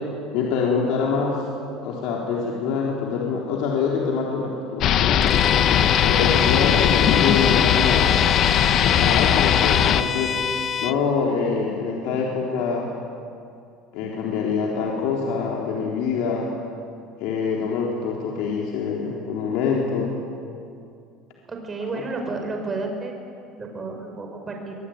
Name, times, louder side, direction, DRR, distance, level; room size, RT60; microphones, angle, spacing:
voice 1, 0.3-1.4 1.8-5.3 6.0-8.1 8.8-10.4 10.8-12.9 13.9-16.5 17.2-20.1, left 5 dB, 70° left, -2 dB, 3.9 m, -25 dB
sound 1, 4.8-10.0, left 10 dB, 45° left, 1.1 m, -19 dB
Bowed string instrument, 5.2-11.0, left 7 dB, 30° left, 0.5 m, -26 dB
voice 2, 21.5-23.1 23.6-24.8, right 3 dB, 20° right, 2 dB, 5.5 m, -31 dB
24.0 x 22.0 x 9.5 m, 2.4 s
cardioid pair, 140°, 0 cm